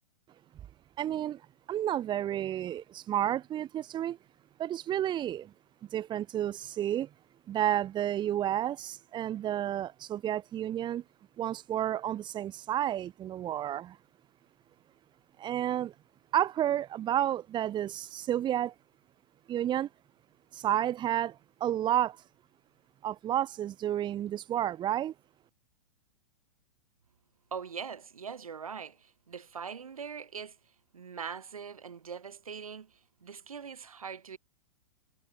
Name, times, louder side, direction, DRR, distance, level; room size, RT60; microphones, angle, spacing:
voice 1, 1.0-1.4 1.7-4.2 4.6-5.5 5.9-7.1 7.5-11.0 11.4-14.0 15.4-15.9 16.3-18.7 19.5-19.9 20.5-22.2 23.0-25.1, right 11 dB, 25° right, 2.2 m, -31 dB
voice 2, 27.5-30.6 30.9-34.4, right 6 dB, 90° right, 6.7 m, -42 dB
hypercardioid pair, 120°, 18 cm